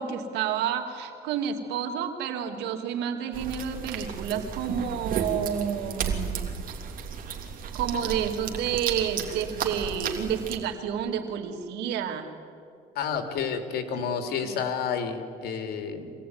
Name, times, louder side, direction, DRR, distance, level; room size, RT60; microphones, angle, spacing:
voice 1, 0.0-6.5 7.7-12.3 14.4-14.5, right 8 dB, 85° right, 4 dB, 2.6 m, -30 dB
sound 1, 3.3-10.6, right 6 dB, 55° right, 3.0 m, -33 dB
voice 2, 12.9-16.1, left 6 dB, 70° left, 6 dB, 2.9 m, -30 dB
25.0 x 17.5 x 9.5 m, 2.5 s
cardioid pair, 110°, 17 cm